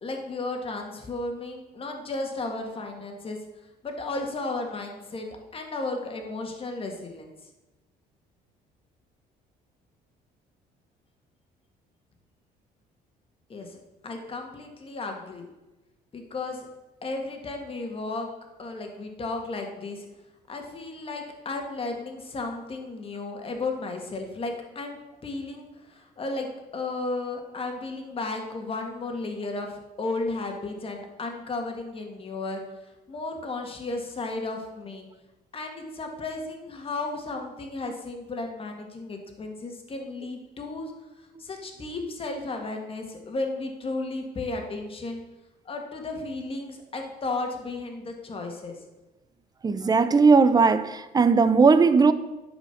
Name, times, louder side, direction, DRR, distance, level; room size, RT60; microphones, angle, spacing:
voice 1, 0.0-3.4 3.8-7.3 13.5-13.8 14.0-15.5 16.1-16.7 17.0-18.3 18.6-20.1 20.5-32.6 33.1-35.1 35.5-40.9 41.4-45.2 45.7-48.8, left 3 dB, 35° left, 1.9 m, -34 dB
voice 2, 49.6-52.1, right 4 dB, 20° right, 0.7 m, -18 dB
10.0 x 5.1 x 7.1 m
cardioid pair, 110°, 17 cm